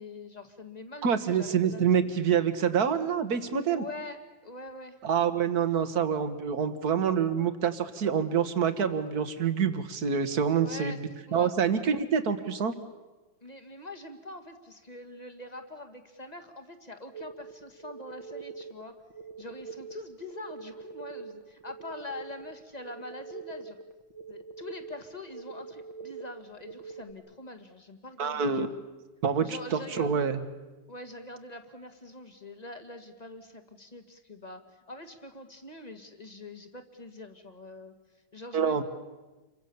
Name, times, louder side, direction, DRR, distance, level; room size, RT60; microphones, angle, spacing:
voice 1, 0.0-2.2 3.7-5.0 10.5-11.0 11.3-11.5 13.4-19.0 19.4-23.8 24.3-28.7 29.4-30.3 30.9-37.9 38.3-38.8, left 2 dB, 20° left, 6 dB, 2.1 m, -44 dB
voice 2, 1.0-3.8 5.0-12.7 28.2-28.7 29.2-30.4 38.5-38.8, right 7 dB, 55° right, 10 dB, 2.0 m, -26 dB
sound 1, 17.1-27.1, right 5 dB, 85° right, 2.4 m, -44 dB
29.0 x 24.0 x 7.1 m, 1.2 s
omnidirectional pair, 2.1 m